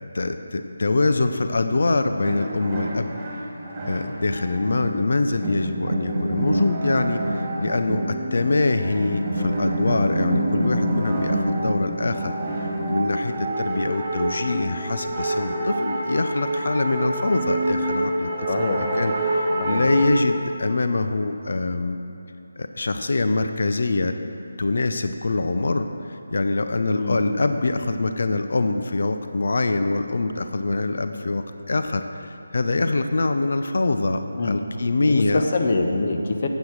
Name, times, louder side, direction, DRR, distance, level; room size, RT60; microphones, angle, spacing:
voice 1, 0.0-3.1 3.9-12.3 12.9-18.5 19.0-22.0 22.6-24.1 24.6-35.4, left 3 dB, 55° left, 8 dB, 0.6 m, -24 dB
sound 1, 2.2-20.0, right 1 dB, 20° right, 2.1 m, -26 dB
voice 2, 18.5-18.8 19.6-19.8 27.0-27.2 34.4-34.5 35.1-36.5, left 3 dB, 40° left, 4 dB, 1.0 m, -24 dB
11.5 x 8.2 x 6.3 m, 2.8 s
figure-of-eight pair, 155°, 0 cm